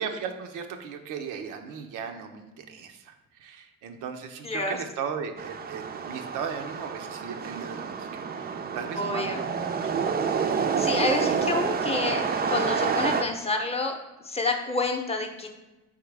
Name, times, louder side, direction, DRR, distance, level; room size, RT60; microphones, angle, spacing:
voice 1, 0.0-11.4, right 6 dB, 85° right, 5 dB, 0.6 m, -37 dB
voice 2, 4.4-4.8 9.0-9.4 10.8-13.9 14.3-15.5, left 3 dB, 20° left, 4 dB, 0.6 m, -28 dB
sound 1, 5.4-13.2, right 6 dB, 30° right, 0.4 m, -28 dB
4.4 x 3.6 x 3.3 m, 1.1 s
cardioid pair, 90°, 30 cm